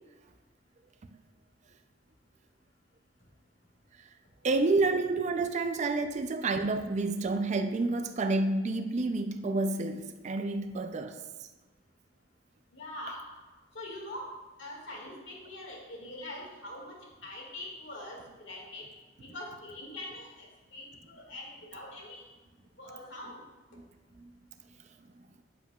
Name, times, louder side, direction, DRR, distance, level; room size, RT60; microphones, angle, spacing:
voice 1, 4.4-11.2 24.2-24.3, right 3 dB, 35° right, 0.4 m, -29 dB
voice 2, 12.7-13.2 13.7-14.3 14.6-17.0 17.2-18.9 19.2-22.2 22.8-23.4, left 1 dB, 70° left, 1.9 m, -43 dB
9.0 x 7.1 x 2.3 m
head